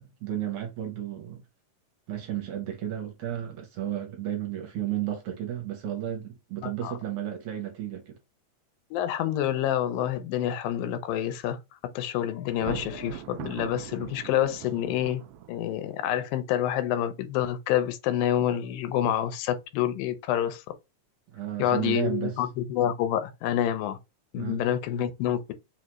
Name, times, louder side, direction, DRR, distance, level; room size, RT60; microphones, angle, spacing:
voice 1, 0.0-1.4 2.1-8.2 21.3-22.4 24.4-24.6, right 11 dB, 70° right, 2.0 m, -33 dB
voice 2, 6.6-6.9 8.9-11.6 12.0-15.2 15.5-20.6 21.6-24.0 24.3-25.5, left 11 dB, 90° left, 2.4 m, -27 dB
Thunder, 12.5-15.8, right 10 dB, 90° right, 1.5 m, -40 dB
5.6 x 2.4 x 3.0 m
omnidirectional pair, 3.8 m